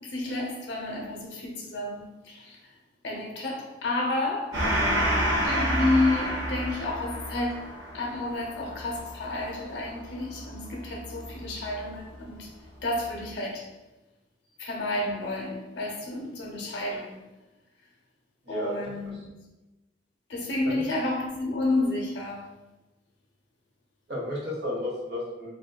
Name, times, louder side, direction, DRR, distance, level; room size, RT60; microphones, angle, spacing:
voice 1, 0.0-2.6 3.0-4.6 5.4-7.6 7.9-12.5 12.8-13.7 14.6-17.2 18.5-19.3 20.3-22.5, left 2 dB, 80° left, -1 dB, 0.6 m, -30 dB
Gong, 4.5-11.5, equal, 80° right, 0.6 m, -29 dB
voice 2, 18.4-19.0 20.6-20.8 24.1-25.5, left 1 dB, 65° right, -6 dB, 0.9 m, -33 dB
2.5 x 2.1 x 2.3 m, 1.1 s
head